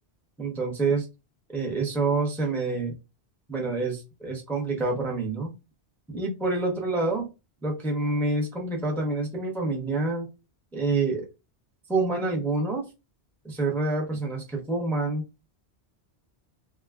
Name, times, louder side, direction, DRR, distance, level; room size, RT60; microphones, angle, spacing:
voice 1, 0.4-1.1 1.5-3.0 3.5-5.5 6.1-7.3 7.6-10.3 10.7-11.3 11.9-12.9 13.4-15.2, right 3 dB, ahead, 0.5 m, -27 dB
3.4 x 2.1 x 2.3 m
omnidirectional pair, 1.1 m